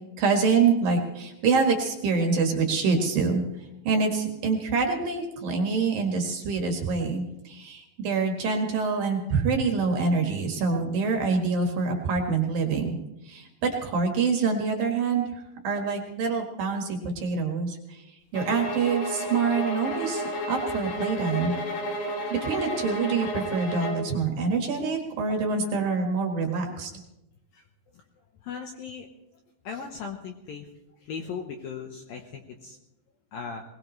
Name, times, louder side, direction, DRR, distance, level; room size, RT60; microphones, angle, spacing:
voice 1, 0.2-3.4 3.8-13.0 13.2-18.0 18.3-21.5 22.3-26.9, right 4 dB, 60° right, 3 dB, 3.0 m, -26 dB
sound 1, 18.3-24.1, equal, 90° left, 5.2 m, -32 dB
voice 2, 28.4-29.1 29.6-30.7 31.0-32.8 33.3-33.6, left 6 dB, 70° left, 3 dB, 2.3 m, -37 dB
21.0 x 21.0 x 3.2 m, 0.93 s
omnidirectional pair, 5.4 m